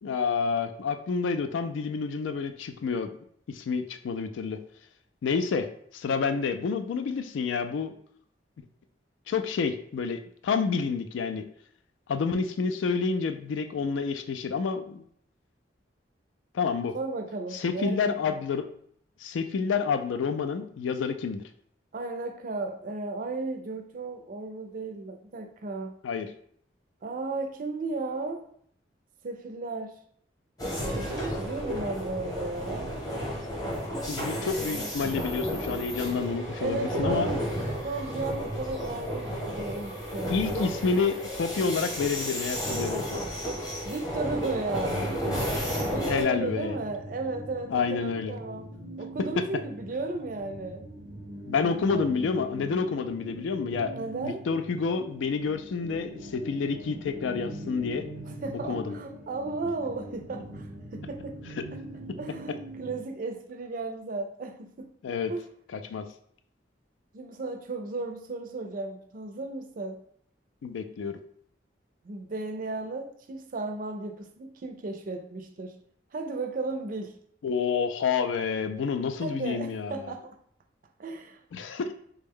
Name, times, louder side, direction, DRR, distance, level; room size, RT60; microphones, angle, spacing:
voice 1, 0.0-3.1 3.5-4.6 5.2-5.7 5.9-7.9 9.3-11.4 12.1-15.0 16.5-17.0 17.5-18.6 19.2-21.4 26.0-26.3 34.1-37.3 40.3-43.2 46.1-46.8 47.7-48.3 49.4-49.5 51.5-53.9 54.2-58.1 58.7-58.9 61.6-61.7 65.0-65.3 65.7-66.0 70.6-71.2 77.4-80.1 81.5-81.9, left 5 dB, 90° left, 8 dB, 0.3 m, -29 dB
voice 2, 16.9-18.1 21.9-26.0 27.0-28.5 29.2-30.0 30.9-32.9 34.4-34.9 36.6-37.5 37.8-40.4 43.8-45.2 45.9-50.9 51.9-52.1 53.9-54.5 58.2-61.4 62.2-64.9 65.3-65.5 67.1-70.0 72.0-75.8 76.1-77.2 79.2-80.3 81.0-81.4, right 3 dB, 50° right, 5 dB, 0.4 m, -35 dB
sound 1, 30.6-46.2, equal, 20° left, 0.8 m, -32 dB
sound 2, 44.4-63.0, right 1 dB, 85° right, 0.7 m, -42 dB
3.4 x 2.1 x 3.5 m, 0.64 s
head